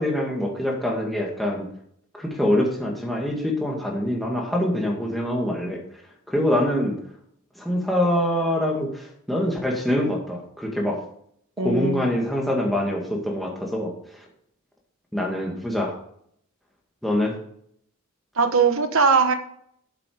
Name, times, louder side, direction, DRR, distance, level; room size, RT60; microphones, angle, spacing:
voice 1, 0.0-1.7 2.1-5.8 6.3-7.0 7.6-11.0 11.6-13.9 15.1-16.0 17.0-17.4, left 1 dB, ahead, -2 dB, 2.0 m, -24 dB
voice 2, 11.6-12.1 18.4-19.3, right 5 dB, 65° right, 8 dB, 1.1 m, -20 dB
7.7 x 7.7 x 5.1 m, 0.66 s
head